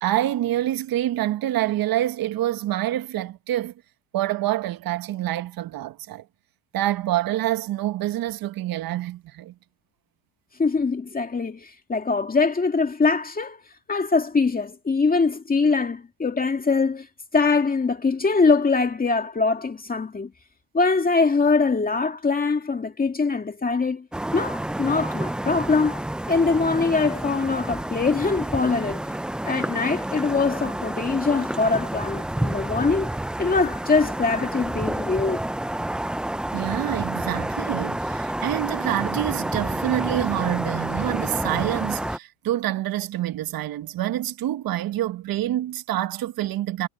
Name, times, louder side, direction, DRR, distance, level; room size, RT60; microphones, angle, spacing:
voice 1, 0.0-3.7 4.1-6.2 6.7-9.5 36.5-46.9, right 13 dB, 45° right, 1.4 m, -26 dB
voice 2, 10.6-13.6 13.9-17.1 17.3-20.3 20.7-24.1 24.3-29.1 29.4-33.1 33.4-35.4, left 4 dB, 15° left, 2.2 m, -23 dB
sound 1, 24.1-42.2, right 1 dB, ahead, 0.3 m, -29 dB
supercardioid pair, 100°, 49 cm